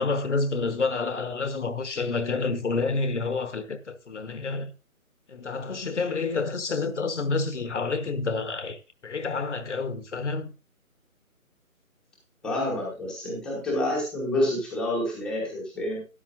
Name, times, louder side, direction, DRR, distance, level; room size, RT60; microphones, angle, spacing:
voice 1, 0.0-4.7 5.3-10.5, left 4 dB, 55° left, 1.3 m, -29 dB
voice 2, 12.4-16.0, left 1 dB, ahead, 1.1 m, -28 dB
12.5 x 11.0 x 2.6 m
figure-of-eight pair, 150°, 43 cm